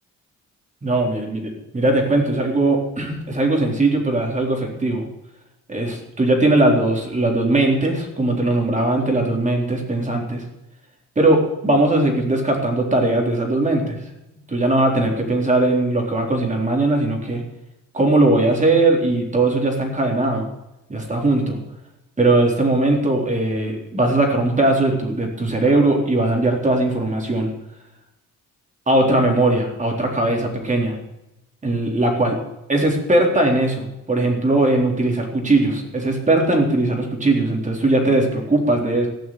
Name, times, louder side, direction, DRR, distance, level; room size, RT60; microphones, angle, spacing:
voice 1, 0.8-5.0 5.7-10.4 11.2-14.0 14.5-17.4 17.9-20.4 20.9-21.6 22.2-27.5 28.9-30.9 31.6-32.4 32.7-39.1, right 2 dB, 25° right, 1 dB, 3.9 m, -19 dB
15.0 x 6.2 x 10.0 m, 0.93 s
cardioid pair, 90°, 30 cm